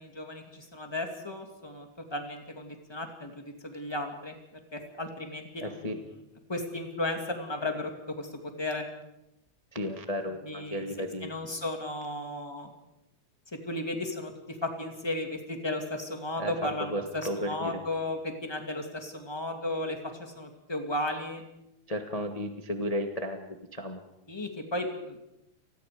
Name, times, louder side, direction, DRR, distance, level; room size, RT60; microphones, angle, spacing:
voice 1, 0.0-4.4 4.7-6.0 6.5-8.3 8.6-8.9 10.5-10.8 11.2-12.7 13.6-14.3 14.6-21.4 24.3-25.2, left 1 dB, 10° left, 4 dB, 2.2 m, -34 dB
voice 2, 5.6-6.0 9.7-11.3 16.4-16.5 16.9-17.8 21.9-24.0, equal, 30° left, 5 dB, 0.6 m, -34 dB
29.0 x 20.5 x 5.1 m, 0.89 s
omnidirectional pair, 3.4 m